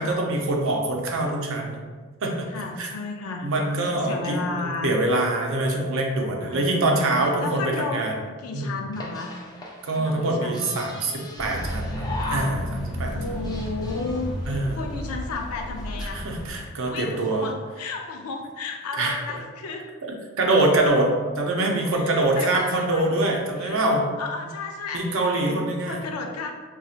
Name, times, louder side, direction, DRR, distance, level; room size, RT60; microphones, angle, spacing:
voice 1, 0.0-1.8 2.2-2.9 3.4-8.1 8.5-8.7 9.8-13.2 14.5-14.8 16.1-17.4 19.0-19.2 20.4-24.1 24.4-24.5 24.9-26.0, right 2 dB, 60° right, 1 dB, 0.5 m, -24 dB
voice 2, 2.5-4.9 6.4-9.4 9.9-10.7 13.1-16.3 16.9-19.9 21.9-23.2 23.6-23.9 24.2-26.5, left 3 dB, 85° left, 3 dB, 0.4 m, -33 dB
sound 1, 8.9-12.9 13.2-14.5 15.0-15.1 15.3-15.4 15.7-16.0, left 2 dB, 15° left, 0.4 m, -38 dB
sound 2, 11.4-16.6, equal, 5° right, 0.8 m, -32 dB
4.0 x 2.3 x 2.4 m, 1.4 s
head